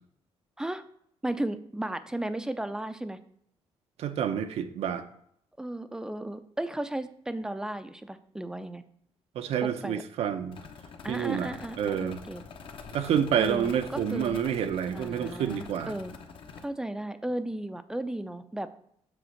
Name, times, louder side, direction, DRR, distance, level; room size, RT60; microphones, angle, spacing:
voice 1, 1.2-3.2 5.6-8.8 9.6-10.0 11.0-12.4 13.4-14.4 14.9-16.1 16.6-18.7, right 1 dB, 5° right, 0.4 m, -35 dB
voice 2, 4.0-5.1 9.3-10.6 11.1-12.2 12.9-15.9, right 8 dB, 80° right, 0.7 m, -28 dB
sound 1, 10.5-16.6, left 5 dB, 55° left, 1.0 m, -45 dB
7.9 x 3.5 x 6.4 m
cardioid pair, 150°, 11 cm